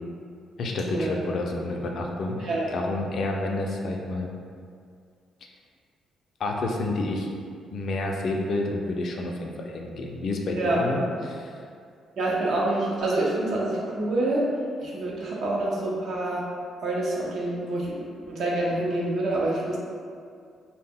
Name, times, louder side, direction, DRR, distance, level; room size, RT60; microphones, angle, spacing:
voice 1, 0.6-4.3 6.4-7.3 7.7-11.6, left 2 dB, 60° left, 1 dB, 0.3 m, -29 dB
voice 2, 10.6-10.9 12.2-14.5 14.8-16.5 16.8-17.9 18.3-19.8, right 2 dB, 65° right, -4 dB, 0.6 m, -26 dB
2.1 x 2.1 x 3.5 m, 2.2 s
cardioid pair, 90°, 0 cm